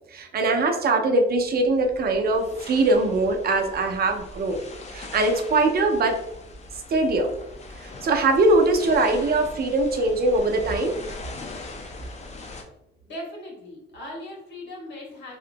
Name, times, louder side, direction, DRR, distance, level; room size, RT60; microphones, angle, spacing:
voice 1, 0.1-4.6 4.9-6.2 6.9-7.3 7.8-10.9, right 2 dB, 50° right, 4 dB, 0.5 m, -22 dB
sound 1, 1.3-12.6, left 2 dB, 35° left, 0.6 m, -41 dB
voice 2, 13.0-15.4, left 1 dB, 60° left, -2 dB, 1.3 m, -38 dB
2.9 x 2.4 x 2.5 m, 0.81 s
cardioid pair, 90°, 20 cm